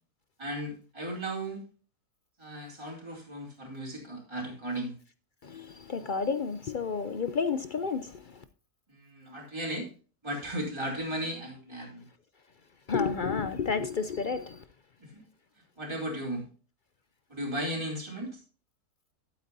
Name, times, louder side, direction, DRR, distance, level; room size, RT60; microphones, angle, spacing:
voice 1, 0.4-1.6 2.4-4.9 8.9-9.9 10.2-12.0 15.0-15.2 15.8-16.4 17.3-18.4, right 1 dB, 15° right, 3.3 m, -36 dB
voice 2, 5.4-8.4 12.9-14.6, left 5 dB, 60° left, 0.5 m, -31 dB
12.5 x 8.4 x 2.7 m
omnidirectional pair, 1.6 m